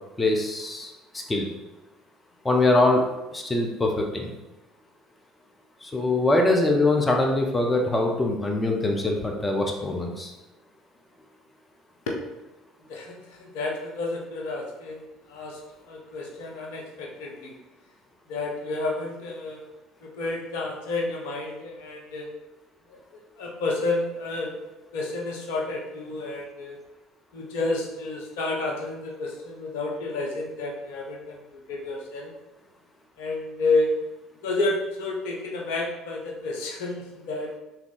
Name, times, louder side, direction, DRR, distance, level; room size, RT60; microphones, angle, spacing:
voice 1, 0.2-1.5 2.4-3.0 3.3-4.3 5.8-10.3, left 2 dB, 20° left, 1 dB, 0.7 m, -23 dB
voice 2, 12.9-15.6 15.9-17.5 18.3-19.6 20.0-22.3 22.9-24.6 24.9-26.8 27.3-32.3 33.2-33.9 34.4-37.5, left 2 dB, 65° left, 0 dB, 0.7 m, -30 dB
3.5 x 2.9 x 3.9 m, 1.0 s
figure-of-eight pair, 60°, 0 cm